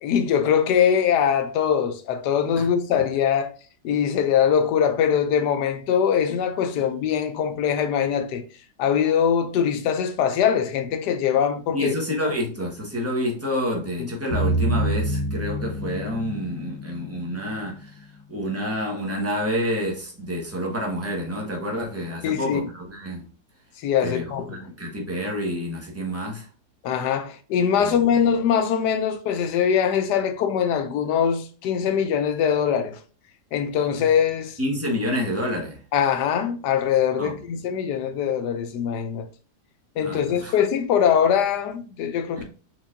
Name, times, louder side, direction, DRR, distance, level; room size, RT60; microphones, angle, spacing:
voice 1, 0.0-3.5 3.8-8.4 8.8-12.0 12.3-12.4 14.0-14.1 22.2-22.6 23.8-24.6 26.8-33.0 33.5-34.5 35.9-39.3 40.0-42.4, left 8 dB, 80° left, 1.2 m, -22 dB
voice 2, 11.7-23.2 24.0-26.5 27.8-28.0 34.6-35.8 37.2-37.4 40.0-40.6 42.4-42.5, equal, 10° right, 0.9 m, -28 dB
sound 1, 14.3-18.0, right 1 dB, 20° left, 1.4 m, -27 dB
4.5 x 4.0 x 2.6 m
omnidirectional pair, 1.8 m